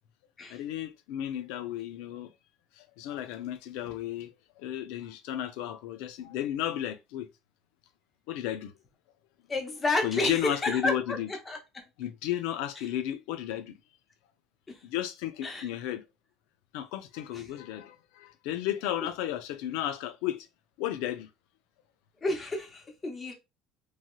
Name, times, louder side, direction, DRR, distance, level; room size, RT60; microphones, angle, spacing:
voice 1, 0.5-2.3 3.0-4.3 4.6-7.3 8.3-8.7 10.0-11.3 12.0-13.7 14.8-16.0 16.7-20.4 20.8-21.3, left 12 dB, 85° left, 0.4 m, -33 dB
voice 2, 9.5-11.2 11.5-11.8 14.7-14.8 15.4-15.7 17.3-17.5 22.2-23.3, left 2 dB, 20° left, 0.7 m, -31 dB
3.1 x 2.7 x 2.2 m
cardioid pair, 160°, 0 cm